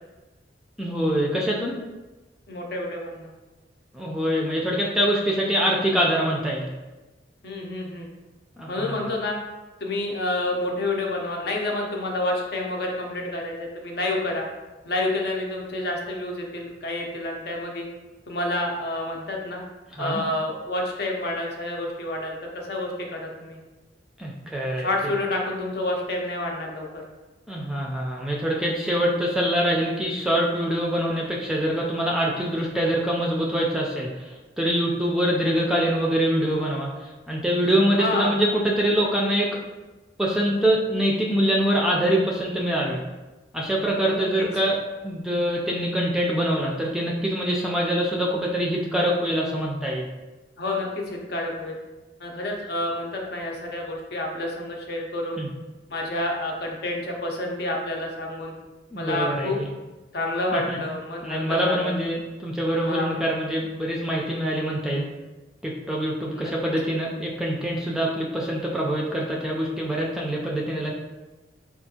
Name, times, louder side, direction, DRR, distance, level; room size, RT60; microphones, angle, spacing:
voice 1, 0.8-1.8 3.9-6.7 8.6-9.0 19.9-20.2 24.2-24.9 27.5-34.1 34.6-36.9 37.3-39.6 40.2-43.0 43.5-50.1 55.4-55.5 58.9-59.7 60.5-60.8 61.2-65.1 65.6-70.9, equal, 5° right, -3 dB, 0.4 m, -24 dB
voice 2, 2.5-3.3 7.4-8.1 8.7-9.4 9.8-14.5 14.9-17.9 18.3-19.6 20.0-23.6 24.8-27.0 38.0-38.4 44.0-44.5 50.6-51.8 52.2-55.4 55.9-58.5 59.0-59.6 60.1-61.9 62.8-63.2 66.3-66.5, left 2 dB, 60° left, 0 dB, 0.6 m, -29 dB
4.4 x 2.4 x 2.7 m, 1.1 s
head